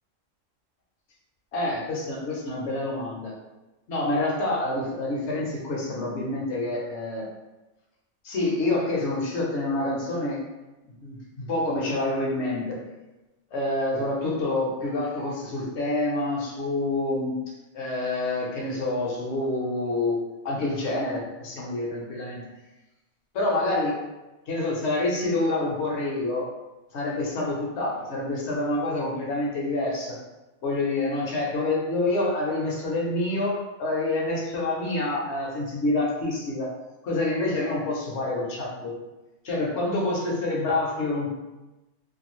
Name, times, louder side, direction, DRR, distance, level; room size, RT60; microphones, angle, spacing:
voice 1, 1.5-3.3 3.9-7.3 8.2-10.4 10.8-12.8 13.5-17.3 17.7-22.4 23.3-23.9 24.5-26.5 26.9-30.2 30.6-36.7 37.0-38.9 39.4-41.3, left 2 dB, 65° left, -3 dB, 1.0 m, -27 dB
2.6 x 2.3 x 3.0 m, 1.0 s
omnidirectional pair, 1.3 m